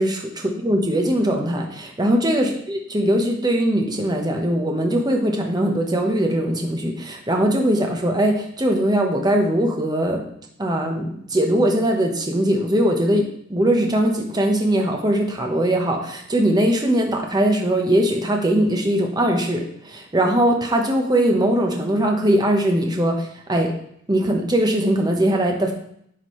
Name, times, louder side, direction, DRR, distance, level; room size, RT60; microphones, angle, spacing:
voice 1, 0.0-10.2 10.6-23.7 24.1-25.7, right 1 dB, 20° right, 2 dB, 0.9 m, -20 dB
10.0 x 6.1 x 3.1 m, 0.69 s
head